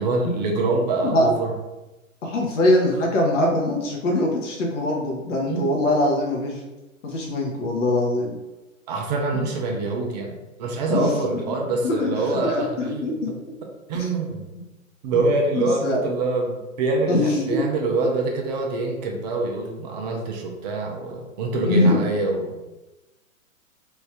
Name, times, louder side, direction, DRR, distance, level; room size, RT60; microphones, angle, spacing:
voice 1, 0.0-1.5 5.5-5.8 8.9-13.0 13.9-14.5 15.0-22.5, right 3 dB, 30° right, 1 dB, 0.6 m, -25 dB
voice 2, 2.2-6.6 7.0-8.3 9.3-9.5 10.9-11.6 11.8-13.3 14.0-14.1 15.5-16.0 17.1-17.6 21.6-22.0, left 1 dB, 60° left, -1 dB, 0.9 m, -23 dB
3.2 x 2.6 x 3.3 m, 1.1 s
figure-of-eight pair, 115°, 41 cm